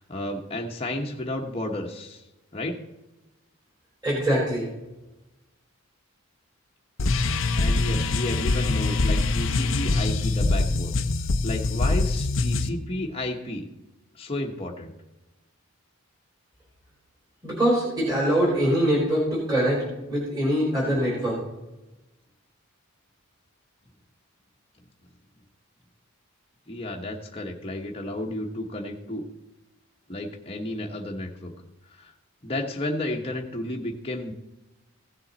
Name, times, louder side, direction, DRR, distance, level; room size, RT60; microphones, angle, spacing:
voice 1, 0.0-2.2 2.5-2.8 7.6-11.0 11.4-13.6 14.2-14.9 26.7-29.3 30.1-31.5 32.0-32.1 32.4-34.3, left 1 dB, 25° left, 0 dB, 1.1 m, -32 dB
voice 2, 4.0-4.7 17.4-19.8 20.1-21.4, right 1 dB, 20° right, -5 dB, 3.8 m, -23 dB
sound 1, 7.0-12.7, left 3 dB, 60° left, 0.6 m, -24 dB
16.0 x 7.1 x 4.0 m, 1.0 s
head